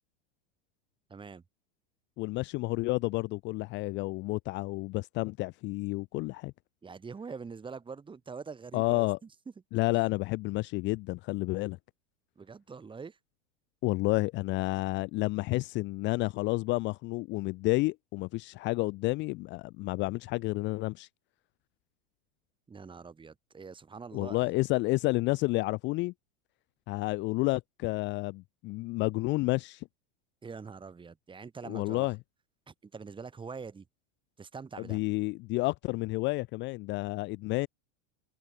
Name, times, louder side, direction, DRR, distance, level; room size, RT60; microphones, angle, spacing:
voice 1, 1.1-1.4 6.8-9.1 12.4-13.2 22.7-24.5 30.4-32.1 32.7-33.9 34.4-35.0, right 5 dB, 15° right, 5.0 m, -44 dB
voice 2, 2.2-6.5 8.7-9.2 9.7-11.8 13.8-21.1 24.1-26.1 26.9-29.9 31.7-32.2 34.9-37.7, left 22 dB, 40° left, 0.5 m, -30 dB
supercardioid pair, 130°, 30 cm